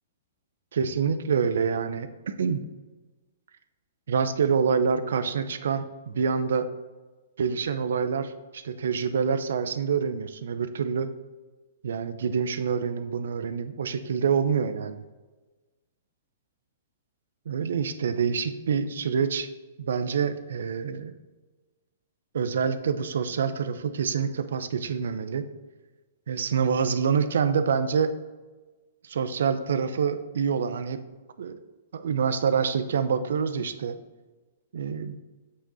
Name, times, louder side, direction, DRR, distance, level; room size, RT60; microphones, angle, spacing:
voice 1, 0.7-2.6 4.1-6.7 7.4-11.1 11.8-15.1 17.5-19.5 19.8-21.1 22.3-25.5 26.3-28.2 29.0-31.0 31.4-31.6 31.9-33.9 34.7-35.2, right 6 dB, 80° right, 11 dB, 0.7 m, -26 dB
7.8 x 6.4 x 4.0 m, 1.3 s
hypercardioid pair, 140°, 0 cm